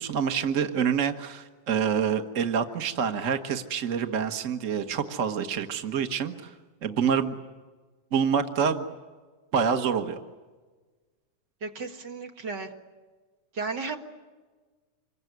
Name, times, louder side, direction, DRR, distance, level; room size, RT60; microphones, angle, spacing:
voice 1, 0.0-6.5 6.8-7.4 8.1-8.8 9.5-10.2, right 7 dB, 70° right, 7 dB, 0.7 m, -27 dB
voice 2, 11.6-12.7 13.5-14.0, right 4 dB, 40° right, 3 dB, 2.1 m, -34 dB
26.5 x 22.5 x 9.3 m, 1.4 s
omnidirectional pair, 3.4 m